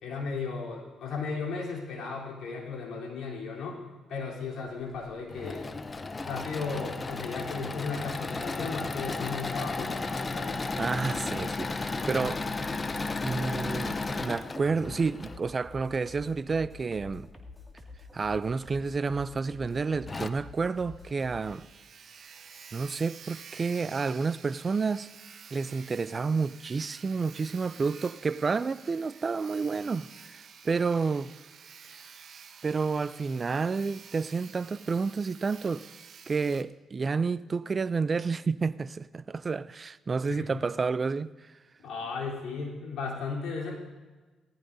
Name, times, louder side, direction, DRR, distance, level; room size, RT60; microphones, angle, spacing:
voice 1, 0.0-5.7 6.2-10.6 40.3-40.5 41.8-43.7, left 4 dB, 75° left, 3.5 m, -35 dB
Engine / Mechanisms, 5.1-15.4 17.0-17.7 18.4-18.5 18.8-18.9 19.7-19.8 20.1-20.3, left 3 dB, 30° left, 0.7 m, -34 dB
voice 2, 10.8-12.5 13.0-17.3 18.1-21.6 22.7-25.1 25.5-31.3 31.9-32.0 32.6-35.9 36.3-41.5, right 4 dB, 35° right, 0.4 m, -30 dB
sound 1, 14.8-21.6, left 3 dB, ahead, 2.1 m, -48 dB
Sawing, 19.7-19.8 20.2-20.3 20.6-20.7 20.9-36.6, right 6 dB, 55° right, 0.9 m, -50 dB
18.0 x 14.0 x 2.7 m
cardioid pair, 90°, 0 cm